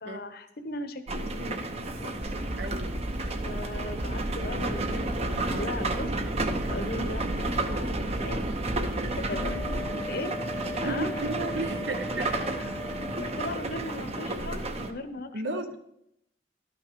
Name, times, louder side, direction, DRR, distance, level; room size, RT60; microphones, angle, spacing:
voice 1, 0.0-2.1 3.4-6.1 6.7-8.5 9.2-9.6 10.0-10.4 10.8-11.2 12.2-12.8 13.2-15.8, left 2 dB, 60° left, 0.9 m, -38 dB
sound 1, 1.1-14.9, right 2 dB, 35° right, 0.8 m, -32 dB
sound 2, 2.2-9.8, right 1 dB, 55° right, 2.5 m, -34 dB
voice 2, 2.6-3.0 9.4-9.6 10.8-12.3 15.3-15.7, right 3 dB, 80° right, 1.0 m, -34 dB
Wind instrument woodwind instrument, 9.3-13.6, left 3 dB, 10° left, 0.6 m, -38 dB
12.0 x 5.9 x 5.2 m
head